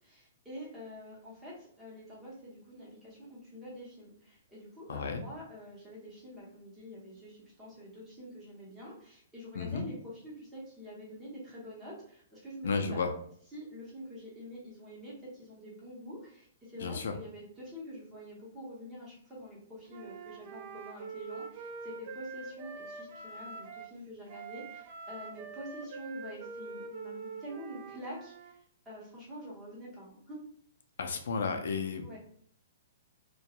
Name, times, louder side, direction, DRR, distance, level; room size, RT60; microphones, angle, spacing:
voice 1, 0.0-13.0 13.5-30.4 32.0-32.2, equal, 10° right, -6 dB, 0.8 m, -46 dB
voice 2, 4.9-5.2 9.5-9.8 12.6-13.1 16.8-17.1 31.0-32.2, left 5 dB, 70° left, 6 dB, 0.4 m, -33 dB
Wind instrument woodwind instrument, 19.9-23.9 24.3-28.5, right 4 dB, 40° right, 0.3 m, -44 dB
2.3 x 2.2 x 2.8 m, 0.62 s
hypercardioid pair, 170°, 0 cm